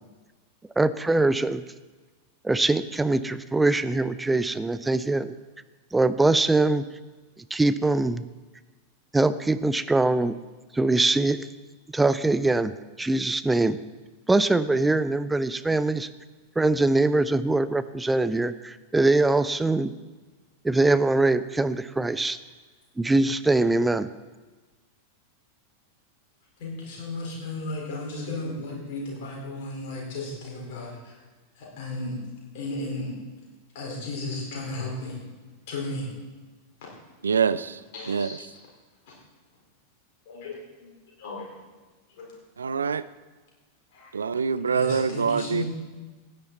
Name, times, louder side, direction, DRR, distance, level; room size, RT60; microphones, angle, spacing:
voice 1, 0.8-1.6 2.4-5.4 5.9-6.8 7.5-8.2 9.1-10.3 10.7-11.5 11.9-12.7 13.0-13.8 14.3-16.1 16.6-19.9 20.6-22.4 23.0-24.1, right 2 dB, 10° right, 13 dB, 0.5 m, -22 dB
voice 2, 26.6-31.2 31.6-32.2 32.5-33.2 33.7-35.2 35.7-36.1 37.9-38.4 39.1-39.2 40.3-40.9 41.2-41.5 42.2-42.3 43.9-44.1 44.7-45.6, left 2 dB, 50° left, -3 dB, 4.4 m, -34 dB
voice 3, 37.2-37.8 38.1-38.4 42.6-43.0 44.1-45.6, right 6 dB, 70° right, 16 dB, 0.4 m, -25 dB
15.5 x 9.9 x 4.1 m, 1.3 s
figure-of-eight pair, 90°, 0 cm